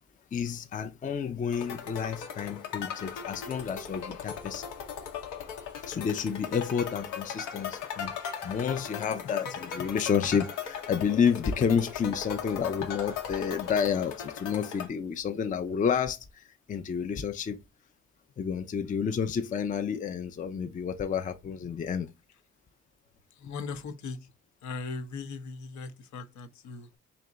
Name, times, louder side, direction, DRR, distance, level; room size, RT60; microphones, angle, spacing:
voice 1, 0.3-4.6 5.8-8.2 8.4-17.6 18.4-22.1, left 7 dB, 25° left, 0.4 m, -30 dB
sound 1, 1.5-14.9, left 7 dB, 90° left, 1.0 m, -38 dB
voice 2, 23.3-24.3 24.6-27.0, left 4 dB, 70° left, 0.8 m, -39 dB
3.4 x 2.9 x 3.9 m
cardioid pair, 90°, 30 cm